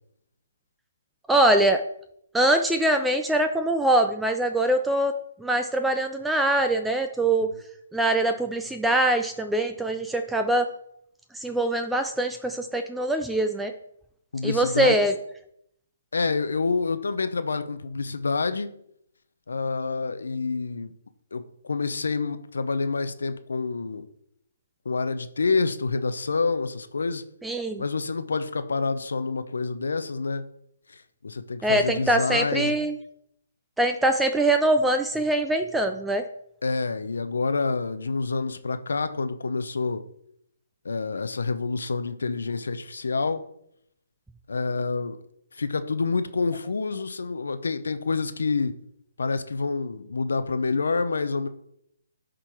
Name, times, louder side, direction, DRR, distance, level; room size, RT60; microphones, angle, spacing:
voice 1, 1.3-1.8 2.3-7.5 7.9-10.7 11.3-13.7 14.4-15.1 27.4-27.8 31.6-32.9 33.8-36.2, right 1 dB, 5° right, 6 dB, 0.4 m, -23 dB
voice 2, 14.3-15.0 16.1-18.7 19.5-20.9 21.3-24.1 24.8-27.3 27.8-30.5 30.9-32.8 36.6-40.0 40.8-43.5 44.5-45.2 45.5-48.7 49.2-51.5, left 4 dB, 75° left, 10 dB, 0.6 m, -27 dB
10.0 x 3.8 x 4.5 m, 0.73 s
hypercardioid pair, 145°, 0 cm